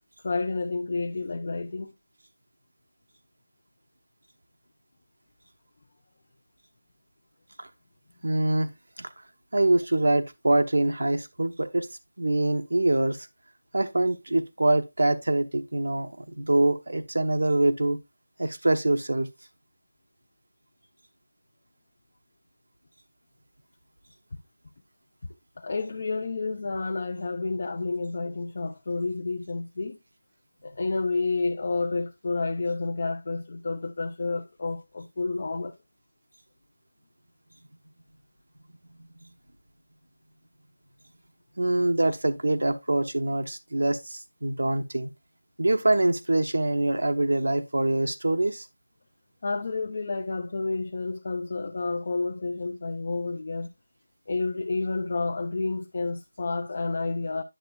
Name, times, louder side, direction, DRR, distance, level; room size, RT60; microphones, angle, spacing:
voice 1, 0.2-1.9 25.6-30.0 30.6-35.7 49.4-53.7 54.3-57.4, left 3 dB, 45° left, 0.7 m, -30 dB
voice 2, 8.2-8.7 9.0-9.1 9.5-11.9 12.2-13.2 13.7-18.0 18.4-19.3 39.0-39.1 41.6-45.1 45.6-48.7, right 2 dB, 85° right, 0.9 m, -24 dB
10.0 x 6.8 x 2.3 m
figure-of-eight pair, 170°, 0 cm